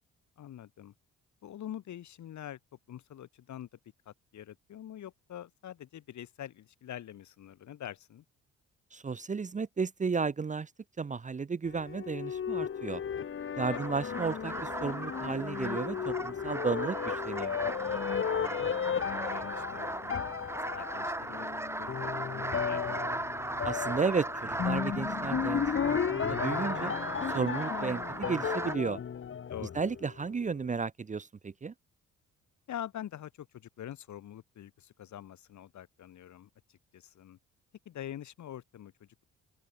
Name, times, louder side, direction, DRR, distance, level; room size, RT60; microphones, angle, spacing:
voice 1, 0.4-0.9 1.4-2.6 2.9-3.7 4.0-8.2 13.7-13.9 18.2-18.7 19.0-20.3 20.6-21.5 21.8-23.0 29.5-29.8 32.7-37.4 37.8-39.2, left 11 dB, 70° left, 5.0 m, -45 dB
voice 2, 8.9-10.7 11.0-13.0 13.6-17.6 23.6-26.9 27.3-29.0 29.7-31.7, right 5 dB, 25° right, 0.8 m, -33 dB
sound 1, 11.7-30.2, left 7 dB, 45° left, 1.4 m, -35 dB
sound 2, 13.6-28.8, right 1 dB, 10° right, 2.6 m, -37 dB
open air
cardioid pair, 90°, 30 cm